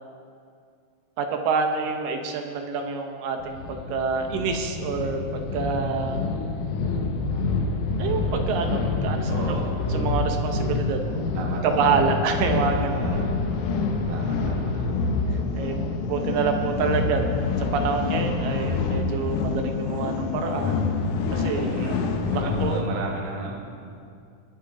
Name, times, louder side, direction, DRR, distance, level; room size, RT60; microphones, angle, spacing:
voice 1, 1.2-6.2 8.0-9.6 9.9-11.2 11.6-13.0 15.5-17.2 17.6-20.9 21.3-21.8 22.3-22.8, right 5 dB, 75° right, 4 dB, 2.4 m, -27 dB
sound 1, 3.4-22.9, left 3 dB, 70° left, 2.0 m, -27 dB
voice 2, 9.3-9.7 11.3-12.1 12.5-13.3 13.7-14.9 18.4-18.7 21.6-22.0 22.3-23.6, right 2 dB, 50° right, -1 dB, 2.1 m, -34 dB
22.0 x 8.1 x 3.8 m, 2.3 s
omnidirectional pair, 4.4 m